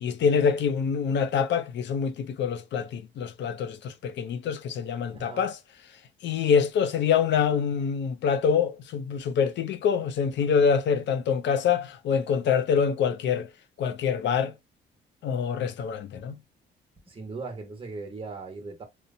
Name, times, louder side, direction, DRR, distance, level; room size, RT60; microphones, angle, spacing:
voice 1, 0.0-5.6 6.2-13.5 13.8-14.5 15.2-16.4, left 6 dB, 65° left, 0.5 m, -25 dB
voice 2, 5.1-5.5 17.1-18.8, right 3 dB, 25° right, 1.1 m, -39 dB
2.8 x 2.1 x 2.5 m
cardioid pair, 90°, 20 cm